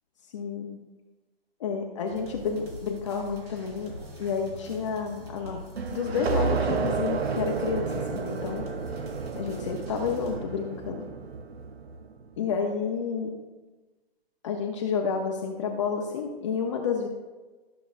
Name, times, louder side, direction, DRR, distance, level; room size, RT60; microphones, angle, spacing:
voice 1, 0.3-0.8 1.6-3.9 4.2-5.6 5.9-8.6 9.3-11.1 12.4-13.4 14.4-17.1, left 6 dB, 30° left, 0 dB, 0.7 m, -30 dB
sound 1, 2.1-10.4, equal, 70° right, 2.8 m, -44 dB
sound 2, 5.8-12.1, right 5 dB, 85° right, 0.8 m, -31 dB
13.0 x 6.9 x 2.5 m, 1.2 s
hypercardioid pair, 155°, 31 cm